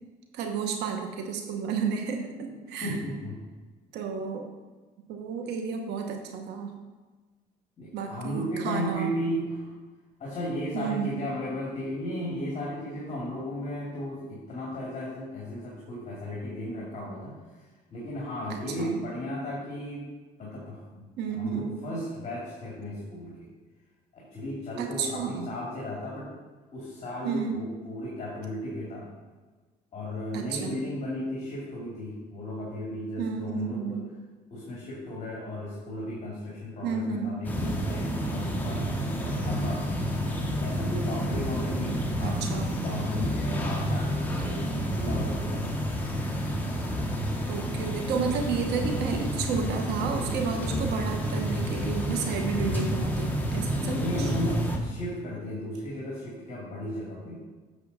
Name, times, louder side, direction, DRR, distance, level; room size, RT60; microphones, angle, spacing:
voice 1, 0.3-3.0 3.9-4.4 5.1-6.7 7.9-9.1 10.7-11.2 18.5-19.0 21.2-21.8 24.8-25.5 27.2-27.6 30.3-30.8 33.2-34.0 36.8-37.4 42.2-42.7 47.5-54.3, right 6 dB, 85° right, 4 dB, 1.0 m, -32 dB
voice 2, 2.7-3.4 7.8-9.7 10.2-20.1 20.4-21.1 21.3-23.5 24.1-26.3 26.7-29.1 29.9-34.1 34.5-45.6 53.8-57.4, left 1 dB, 40° left, -5 dB, 2.5 m, -35 dB
sound 1, 37.4-54.8, equal, 10° left, 1.3 m, -29 dB
8.2 x 6.8 x 4.1 m, 1.3 s
cardioid pair, 110°, 17 cm